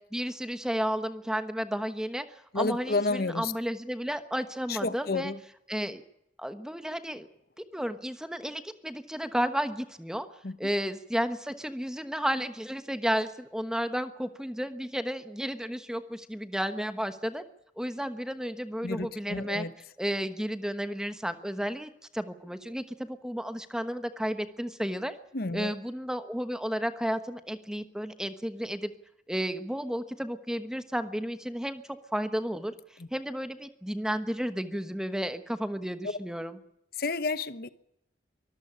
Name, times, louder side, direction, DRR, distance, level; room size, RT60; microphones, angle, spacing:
voice 1, 0.1-5.3 5.7-6.0 6.4-7.3 7.6-10.3 10.6-17.4 17.8-19.7 20.0-25.1 25.5-28.9 29.3-32.7 33.1-36.6, equal, 5° right, 1.2 m, -32 dB
voice 2, 2.5-3.5 4.7-5.4 10.4-10.6 18.8-19.7 25.3-25.7 33.0-33.1 36.0-36.2 37.0-37.7, left 3 dB, 55° left, 1.0 m, -31 dB
24.0 x 13.5 x 10.0 m
head